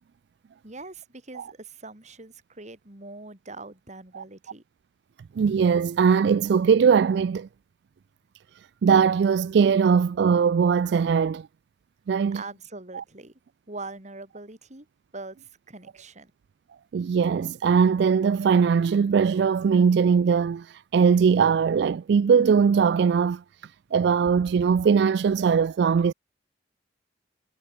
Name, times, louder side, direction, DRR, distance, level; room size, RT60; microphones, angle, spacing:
voice 1, 0.6-4.6 12.3-13.3 13.7-14.9 15.1-16.3, right 3 dB, 40° right, 3.4 m, -42 dB
voice 2, 5.4-7.5 8.8-11.5 12.1-12.4 12.9-13.0 16.9-23.4 23.9-26.1, right 6 dB, 65° right, 0.3 m, -20 dB
head